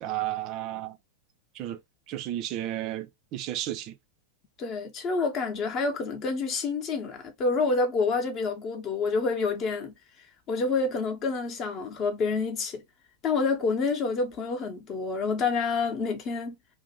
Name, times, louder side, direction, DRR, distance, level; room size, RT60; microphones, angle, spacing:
voice 1, 0.0-1.0 1.6-1.8 2.1-3.9, right 13 dB, 40° right, 0.3 m, -33 dB
voice 2, 4.6-9.9 10.5-12.8 13.2-16.5, left 4 dB, 35° left, 0.7 m, -28 dB
2.5 x 2.1 x 2.8 m
figure-of-eight pair, 90°, 0 cm